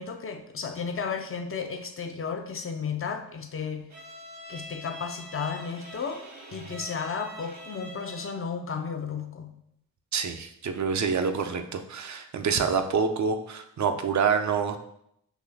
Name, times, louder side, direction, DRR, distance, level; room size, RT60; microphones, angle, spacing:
voice 1, 0.0-3.9 4.5-6.2 6.5-9.5, left 6 dB, 35° left, 6 dB, 0.7 m, -33 dB
Bowed string instrument, 3.9-8.5, right 1 dB, 80° right, 1.0 m, -44 dB
voice 2, 10.1-14.8, right 6 dB, 45° right, 7 dB, 0.6 m, -27 dB
6.1 x 3.1 x 2.7 m, 0.74 s
hypercardioid pair, 40°, 41 cm